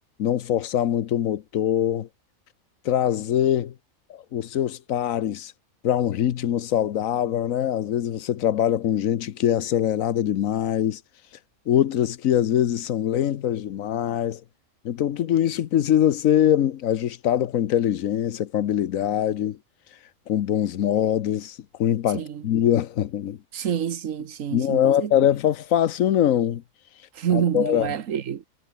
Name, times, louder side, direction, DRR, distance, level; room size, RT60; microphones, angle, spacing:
voice 1, 0.2-2.1 2.8-3.7 4.1-5.5 5.8-11.0 11.7-14.4 14.8-19.6 20.3-23.4 24.5-26.6 27.3-28.0, left 10 dB, 80° left, 1.2 m, -23 dB
voice 2, 23.5-25.1 27.2-28.4, right 9 dB, 75° right, 1.4 m, -27 dB
omnidirectional pair, 1.4 m